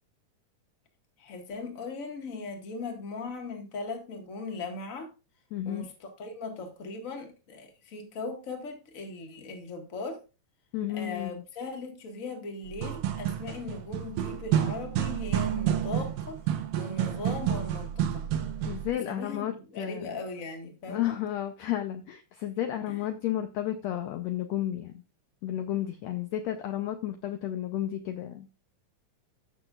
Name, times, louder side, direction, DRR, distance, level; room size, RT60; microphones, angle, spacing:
voice 1, 1.2-5.1 5.6-10.2 10.9-16.4 16.8-18.2 19.1-21.2 22.9-23.0, left 3 dB, 35° left, 1.3 m, -39 dB
voice 2, 5.5-5.9 10.7-11.4 18.6-20.1 20.9-25.0 25.4-28.5, left 12 dB, 80° left, 1.5 m, -32 dB
sound 1, 12.7-18.9, right 10 dB, 85° right, 2.7 m, -29 dB
14.5 x 6.1 x 2.4 m
omnidirectional pair, 3.9 m